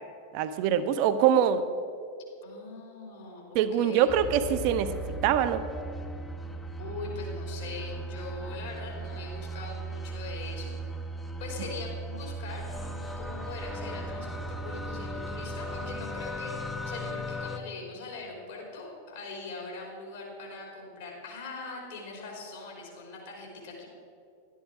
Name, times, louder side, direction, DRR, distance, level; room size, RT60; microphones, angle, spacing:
voice 1, 0.3-1.6 3.5-5.6, right 9 dB, 45° right, 11 dB, 0.7 m, -24 dB
voice 2, 2.4-4.1 6.8-10.8 11.4-23.9, left 3 dB, 60° left, -1 dB, 3.4 m, -41 dB
sound 1, 4.1-17.6, right 1 dB, 5° left, 0.7 m, -37 dB
12.0 x 10.0 x 4.7 m, 2.5 s
figure-of-eight pair, 90°, 0 cm